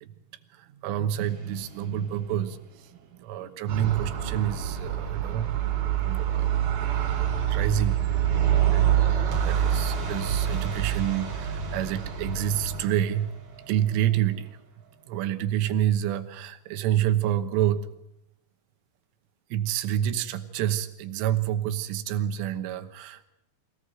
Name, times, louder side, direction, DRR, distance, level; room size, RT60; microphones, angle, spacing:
voice 1, 0.8-2.6 3.2-5.6 6.0-6.5 7.5-8.0 8.7-13.3 13.7-14.5 15.1-17.9 19.5-23.3, right 11 dB, 80° right, 11 dB, 3.6 m, -28 dB
sound 1, 1.2-3.2 9.3-15.1, right 2 dB, 40° right, 3.4 m, -39 dB
sound 2, 3.7-12.8, right 10 dB, 55° right, 4.8 m, -26 dB
24.0 x 18.0 x 7.9 m, 0.82 s
omnidirectional pair, 5.7 m